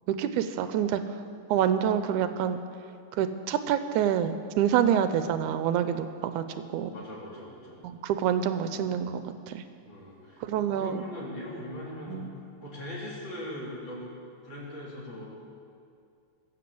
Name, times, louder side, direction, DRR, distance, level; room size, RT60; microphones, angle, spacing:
voice 1, 0.1-1.2 1.5-2.6 3.1-6.9 7.8-9.6 10.4-11.0 12.1-12.3, right 9 dB, 80° right, 10 dB, 1.9 m, -27 dB
voice 2, 6.9-7.8 8.8-8.9 9.8-12.2 12.6-14.1 14.4-15.3, left 1 dB, 35° left, -5 dB, 3.9 m, -40 dB
19.0 x 7.6 x 7.7 m, 2.4 s
omnidirectional pair, 3.7 m